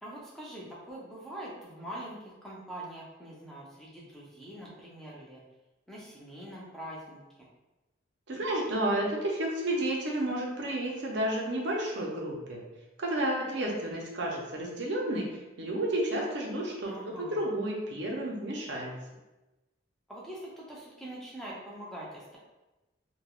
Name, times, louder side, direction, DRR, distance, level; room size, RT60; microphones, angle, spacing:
voice 1, 0.0-5.4 5.9-7.2 16.8-17.6 20.1-22.4, right 1 dB, ahead, -6 dB, 0.5 m, -43 dB
voice 2, 8.3-12.6 13.0-15.3 15.6-16.9 17.2-19.0, right 1 dB, 60° right, -1 dB, 0.6 m, -31 dB
3.3 x 2.2 x 2.3 m, 1.0 s
head